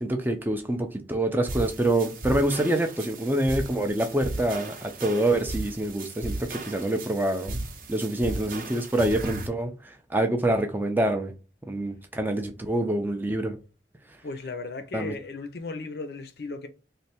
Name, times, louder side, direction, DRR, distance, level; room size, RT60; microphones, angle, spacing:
voice 1, 0.0-7.6 7.9-11.3 11.6-13.6 14.9-15.1, right 1 dB, 10° right, 0.4 m, -26 dB
sound 1, 1.5-9.5, right 2 dB, 50° right, 0.6 m, -36 dB
voice 2, 14.2-16.7, left 3 dB, 60° left, 0.5 m, -36 dB
3.2 x 2.1 x 4.2 m
head